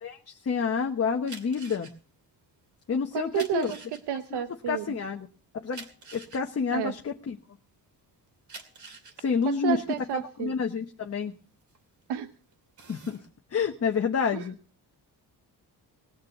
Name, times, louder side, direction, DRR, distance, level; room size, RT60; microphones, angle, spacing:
voice 1, 0.0-1.9 2.9-3.7 4.3-5.3 5.5-5.8 6.1-7.4 9.2-9.8 10.1-11.3 12.9-13.2 13.5-14.6, left 6 dB, 40° left, 3 dB, 1.1 m, -29 dB
sound 1, 1.2-7.8 8.3-12.1 12.5-13.3, right 4 dB, 45° right, 2.5 m, -47 dB
voice 2, 3.1-3.8 4.1-5.0 6.7-6.9 9.5-10.5 12.1-12.3 14.3-14.4, right 11 dB, 80° right, 10 dB, 0.9 m, -31 dB
20.0 x 6.7 x 6.7 m, 0.39 s
cardioid pair, 125°, 39 cm